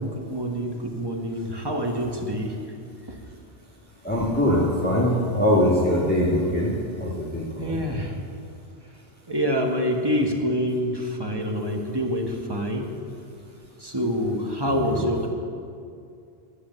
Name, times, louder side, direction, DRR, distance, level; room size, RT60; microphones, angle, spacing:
voice 1, 0.0-2.5 7.6-8.1 9.3-12.9 13.8-15.3, equal, 20° right, 2 dB, 1.2 m, -26 dB
voice 2, 4.0-7.8 11.6-11.8 14.7-15.1, left 1 dB, 10° left, -7 dB, 1.7 m, -23 dB
11.5 x 7.7 x 7.4 m, 2.4 s
omnidirectional pair, 1.2 m